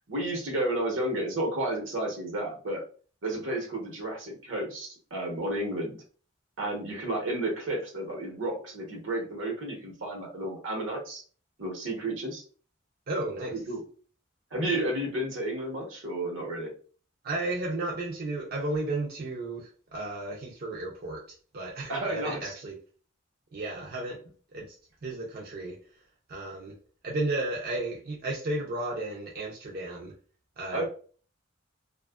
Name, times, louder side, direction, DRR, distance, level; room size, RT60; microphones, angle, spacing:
voice 1, 0.1-2.8 3.2-6.0 6.6-11.2 11.6-12.4 13.5-13.8 14.5-16.7 21.9-22.6 30.7-30.8, right 1 dB, 80° right, 1 dB, 0.9 m, -32 dB
voice 2, 13.1-13.6 17.2-21.2 21.5-22.8 23.5-24.2 24.5-24.8 25.0-25.8 26.3-26.7 27.0-30.1 30.6-30.8, right 2 dB, 50° right, -3 dB, 0.5 m, -33 dB
2.8 x 2.3 x 2.3 m, 0.41 s
head